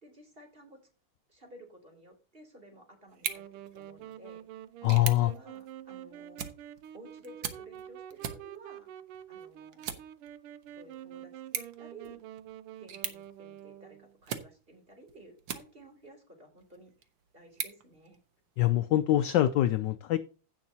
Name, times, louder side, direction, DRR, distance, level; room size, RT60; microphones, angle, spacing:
voice 1, 0.0-0.8 1.3-3.4 3.7-4.4 5.2-6.5 6.9-8.9 9.3-9.9 10.8-12.2 12.8-17.1 17.3-18.2, right 1 dB, 25° right, 3.1 m, -54 dB
sound 1, 3.1-16.1 16.6-18.6, right 8 dB, 65° right, 1.7 m, -43 dB
Wind instrument woodwind instrument, 3.3-14.2, right 11 dB, 85° right, 1.6 m, -47 dB
voice 2, 4.8-5.3 18.6-20.2, left 14 dB, 75° left, 1.0 m, -24 dB
16.0 x 6.3 x 2.8 m
omnidirectional pair, 2.4 m